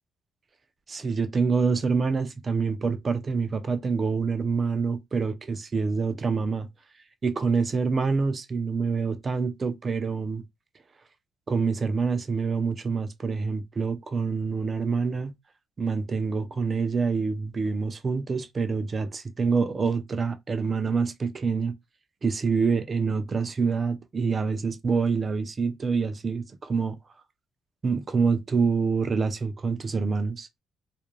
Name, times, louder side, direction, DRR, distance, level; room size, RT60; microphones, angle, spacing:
voice 1, 0.9-6.7 7.2-10.4 11.5-15.3 15.8-21.7 22.2-27.0 27.8-30.5, right 5 dB, 30° right, 0.4 m, -26 dB
2.4 x 2.1 x 3.0 m
cardioid pair, 125°, 0 cm